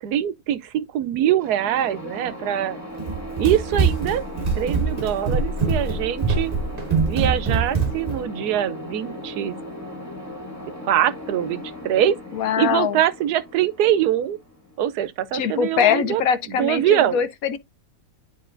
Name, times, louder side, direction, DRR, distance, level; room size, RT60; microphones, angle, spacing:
voice 1, 0.0-2.8 3.4-4.2 4.6-6.5 7.0-9.5 10.8-12.2 12.6-14.4 14.8-16.2 16.5-17.2, right 11 dB, 85° right, 1.2 m, -23 dB
sound 1, 1.4-15.1, left 1 dB, 10° left, 1.7 m, -37 dB
Run, 3.0-8.2, right 4 dB, 30° right, 1.2 m, -23 dB
voice 2, 12.3-13.0 15.3-17.6, left 8 dB, 70° left, 1.1 m, -22 dB
10.5 x 3.7 x 2.5 m
omnidirectional pair, 1.6 m